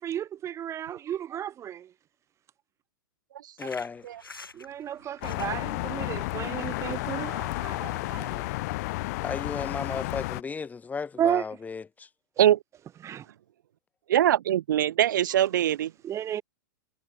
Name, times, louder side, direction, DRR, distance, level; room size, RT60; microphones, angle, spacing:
voice 1, 0.0-1.9 4.5-8.5 11.2-11.4 13.0-13.3 16.0-16.4, right 10 dB, 25° right, 1.8 m, -33 dB
sound 1, 3.6-9.7, left 3 dB, 90° left, 6.4 m, -49 dB
voice 2, 3.6-4.1 9.2-12.1, left 5 dB, 15° left, 3.4 m, -35 dB
sound 2, 5.2-10.4, left 22 dB, 50° left, 1.0 m, -32 dB
voice 3, 14.1-15.9, right 12 dB, 60° right, 1.6 m, -22 dB
figure-of-eight pair, 105°, 11 cm